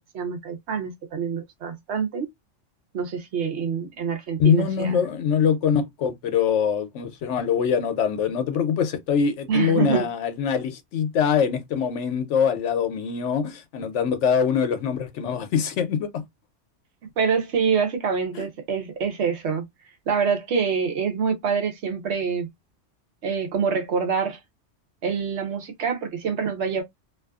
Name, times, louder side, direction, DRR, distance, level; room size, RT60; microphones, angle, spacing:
voice 1, 0.1-2.3 2.9-5.0 9.5-10.1 17.2-19.6 20.1-22.5 23.2-24.4 25.0-26.8, right 6 dB, 65° right, 1.0 m, -26 dB
voice 2, 4.4-16.2 18.3-18.5, left 7 dB, 75° left, 0.9 m, -23 dB
2.5 x 2.4 x 2.2 m
omnidirectional pair, 1.3 m